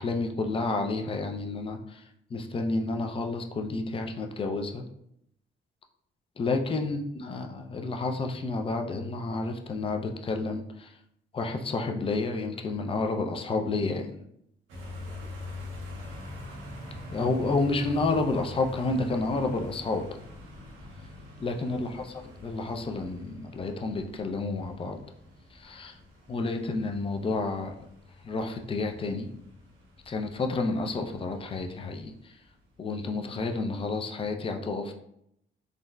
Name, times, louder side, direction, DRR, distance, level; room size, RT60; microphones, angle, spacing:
voice 1, 0.0-2.0 2.3-4.8 6.4-10.9 11.3-14.2 17.1-20.0 21.4-22.1 22.4-25.0 25.5-26.0 26.3-27.7 28.2-29.3 30.1-32.4 32.8-34.9, left 3 dB, 30° left, 4 dB, 0.4 m, -30 dB
sound 1, 14.7-33.2, left 2 dB, 85° right, 0.7 m, -45 dB
3.7 x 2.1 x 2.2 m, 0.75 s
cardioid pair, 90°, 20 cm